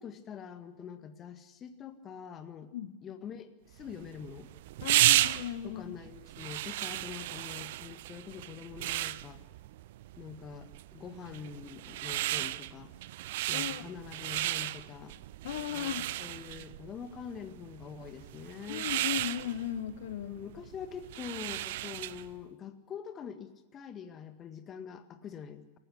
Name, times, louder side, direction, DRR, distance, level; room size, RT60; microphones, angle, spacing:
voice 1, 0.0-2.7 3.0-4.5 5.6-9.4 10.2-12.9 13.5-15.2 15.7-18.9 20.2-25.8, left 7 dB, 25° left, 9 dB, 1.8 m, -45 dB
sound 1, 3.8-22.3, right 16 dB, 55° right, 0.6 m, -34 dB
voice 2, 4.8-5.8 13.5-13.9 15.4-16.1 18.7-20.4, left 11 dB, 55° left, 11 dB, 1.0 m, -36 dB
28.0 x 16.0 x 6.6 m, 1.1 s
figure-of-eight pair, 90°, 0 cm